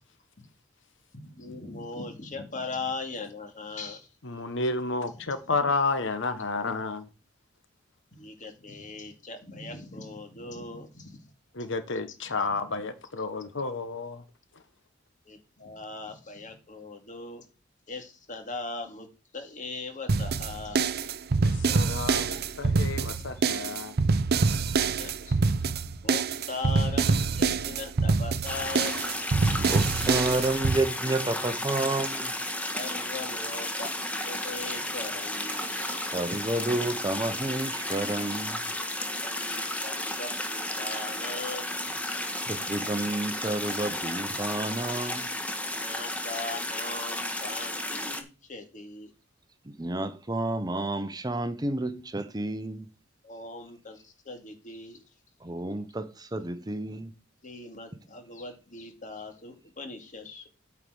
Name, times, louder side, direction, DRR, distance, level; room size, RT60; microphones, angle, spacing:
voice 1, 1.2-4.1 5.2-5.5 8.1-11.2 12.3-12.4 15.3-17.4 17.9-19.1 19.3-20.8 22.0-22.1 23.4-23.5 25.0-25.4 26.0-29.1 32.7-33.9 34.2-36.3 39.1-41.7 45.7-49.1 53.2-55.0 57.4-60.5, left 3 dB, 40° left, 2.3 m, -40 dB
voice 2, 4.2-7.1 11.5-14.2 21.4-23.9, left 3 dB, 65° left, 1.0 m, -31 dB
sound 1, 20.1-30.8, right 4 dB, 55° right, 0.6 m, -26 dB
sound 2, 28.5-48.2, left 1 dB, 5° left, 1.3 m, -33 dB
voice 3, 29.6-32.3 36.1-38.6 42.3-45.3 49.7-52.9 55.4-57.1, right 2 dB, 20° right, 0.8 m, -30 dB
8.9 x 4.7 x 6.2 m
head